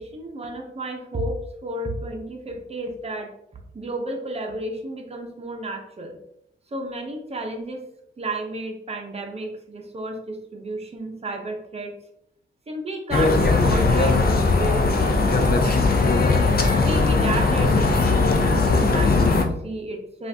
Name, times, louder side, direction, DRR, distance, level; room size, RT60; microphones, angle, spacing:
voice 1, 0.0-3.3 3.7-6.2 6.7-7.8 8.2-11.9 12.7-16.4 16.8-20.3, right 1 dB, 30° right, 2 dB, 0.8 m, -32 dB
sound 1, 13.1-19.4, left 3 dB, 50° left, 0.6 m, -19 dB
5.5 x 2.5 x 2.8 m, 0.79 s
wide cardioid pair, 125°, 20 cm